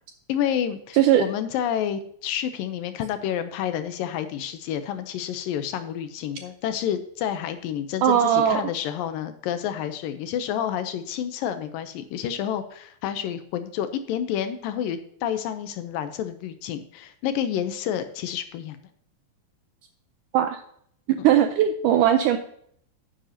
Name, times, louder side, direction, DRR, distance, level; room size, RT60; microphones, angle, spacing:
voice 1, 0.3-18.8 21.2-21.3, left 9 dB, 80° left, 10 dB, 2.2 m, -29 dB
voice 2, 0.9-1.2 8.0-8.6 20.3-20.6 21.1-22.4, right 10 dB, 80° right, 7 dB, 1.9 m, -19 dB
10.0 x 9.9 x 2.8 m, 0.65 s
omnidirectional pair, 4.3 m